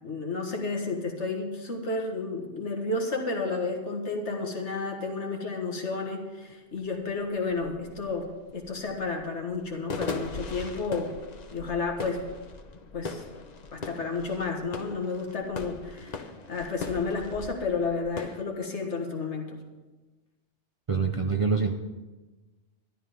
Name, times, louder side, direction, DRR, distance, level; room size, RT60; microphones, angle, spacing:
voice 1, 0.0-11.1 11.5-12.2 12.9-13.2 13.7-19.6, left 3 dB, 75° left, 2 dB, 2.0 m, -31 dB
sound 1, 6.5-6.6 6.9-18.4, left 4 dB, 40° left, 0.9 m, -40 dB
voice 2, 20.9-21.8, right 5 dB, 35° right, 3 dB, 0.7 m, -25 dB
12.5 x 11.5 x 5.2 m, 1.2 s
omnidirectional pair, 1.2 m